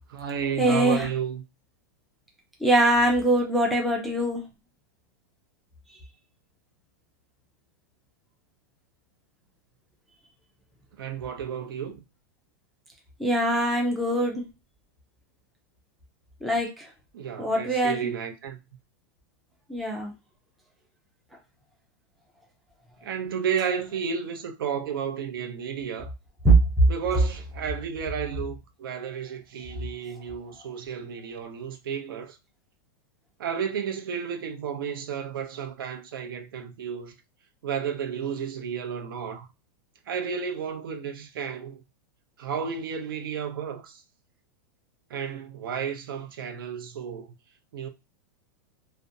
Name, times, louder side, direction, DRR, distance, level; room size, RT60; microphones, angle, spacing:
voice 1, 0.0-1.4 11.0-12.0 17.1-18.6 23.0-26.1 26.9-32.4 33.4-37.1 37.6-39.5 40.1-41.8 42.4-44.0 45.1-47.3 47.7-47.9, right 7 dB, 80° right, 0.6 m, -32 dB
voice 2, 0.6-1.1 2.6-4.4 13.2-14.4 16.4-16.9 17.4-18.1 19.7-20.1 26.4-26.6, right 1 dB, ahead, 0.3 m, -22 dB
2.4 x 2.1 x 2.6 m
supercardioid pair, 175°, 11 cm